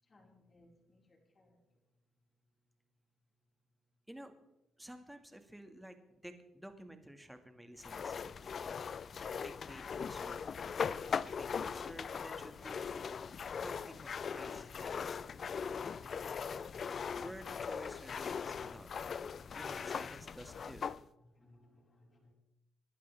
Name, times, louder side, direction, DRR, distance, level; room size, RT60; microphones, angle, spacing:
voice 1, 0.0-1.8 20.6-20.7 21.2-22.3, left 1 dB, 35° left, 4.8 m, -66 dB
voice 2, 4.8-8.5 9.4-10.4 11.4-12.9 13.6-15.2 17.1-18.9 19.6-20.9, right 1 dB, 5° right, 1.8 m, -52 dB
sound 1, 7.8-21.0, left 6 dB, 50° left, 0.5 m, -40 dB
27.5 x 11.5 x 3.5 m
cardioid pair, 90°, 0 cm